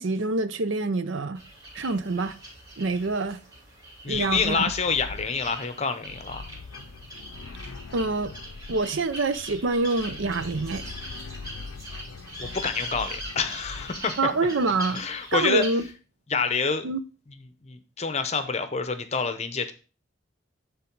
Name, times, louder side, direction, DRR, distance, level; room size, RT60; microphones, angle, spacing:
voice 1, 0.0-1.4 1.7-2.4 2.8-3.4 4.1-4.6 7.9-8.3 8.7-10.9 14.2-15.0 15.3-15.9 16.8-17.0, right 3 dB, 70° right, 0.6 m, -26 dB
sound 1, 1.3-15.9, equal, 20° right, 3.6 m, -42 dB
voice 2, 4.0-6.4 12.4-14.3 14.9-15.6 16.3-16.8 17.6-19.7, left 5 dB, 30° left, 0.7 m, -27 dB
sound 2, 4.1-14.2, left 4 dB, 85° left, 0.5 m, -42 dB
11.0 x 3.7 x 4.5 m
head